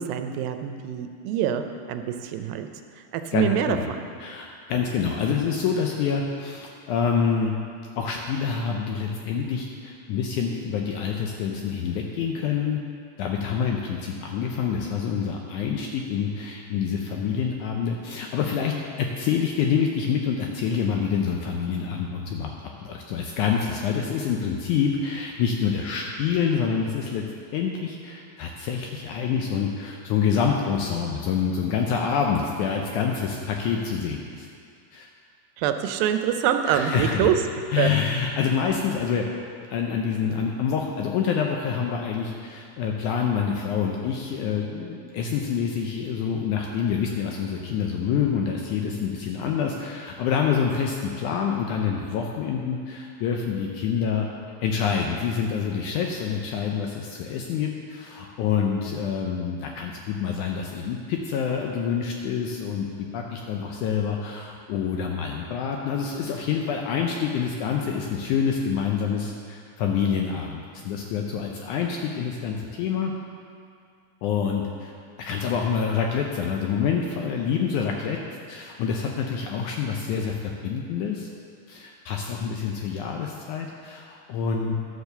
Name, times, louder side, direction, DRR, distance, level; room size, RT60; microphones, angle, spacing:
voice 1, 0.0-2.7 3.1-4.0 35.6-37.4 37.8-37.9, right 9 dB, 85° right, 7 dB, 2.4 m, -25 dB
voice 2, 3.3-3.9 4.2-7.5 8.0-12.8 13.2-27.2 27.5-34.5 34.9-35.1 36.7-37.3 37.7-39.3 39.7-54.3 54.6-73.1 74.2-74.9 75.2-78.2 78.5-81.3 81.7-84.7, left 6 dB, 80° left, 1 dB, 1.8 m, -27 dB
11.5 x 4.8 x 6.6 m, 2.3 s
omnidirectional pair, 4.1 m